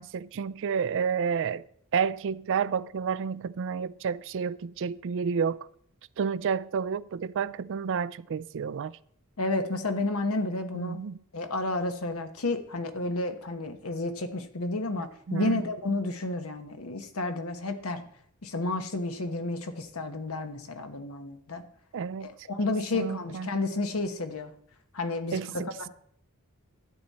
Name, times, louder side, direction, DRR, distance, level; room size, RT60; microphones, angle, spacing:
voice 1, 0.0-1.6 1.9-5.6 6.2-9.0 10.7-11.2 15.3-15.6 21.9-22.3 22.7-23.5 25.3-25.9, right 6 dB, 60° right, 0.4 m, -30 dB
voice 2, 9.4-11.0 11.3-18.1 18.4-21.6 22.2-24.5 24.9-25.9, left 2 dB, 75° left, 1.1 m, -31 dB
12.5 x 8.8 x 4.2 m
head